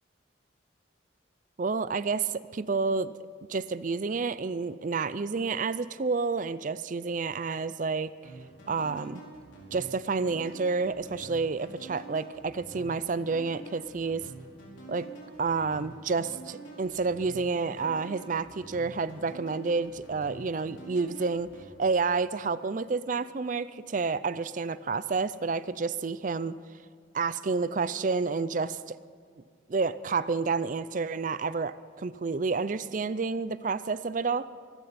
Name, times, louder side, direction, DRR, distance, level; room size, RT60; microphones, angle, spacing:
voice 1, 1.6-3.1 3.5-8.3 8.7-9.2 9.7-14.3 14.9-15.1 15.4-21.5 21.8-26.6 27.1-29.0 29.7-34.5, right 4 dB, 40° right, 16 dB, 0.5 m, -29 dB
sound 1, 8.2-21.7, right 3 dB, 75° left, 4.3 m, -47 dB
24.0 x 13.0 x 4.2 m, 2.1 s
head